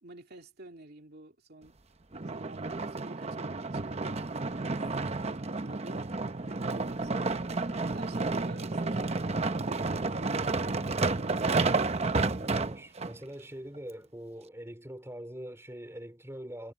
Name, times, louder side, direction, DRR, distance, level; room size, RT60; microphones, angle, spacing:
voice 1, 0.0-1.8 2.3-4.2 4.6-5.0 5.6-6.0 6.5-11.6, right 2 dB, 55° right, 2.6 m, -50 dB
sound 1, 2.1-13.1 13.8-13.9, right 3 dB, 35° right, 0.8 m, -31 dB
voice 2, 12.2-16.7, equal, 15° right, 3.1 m, -43 dB
head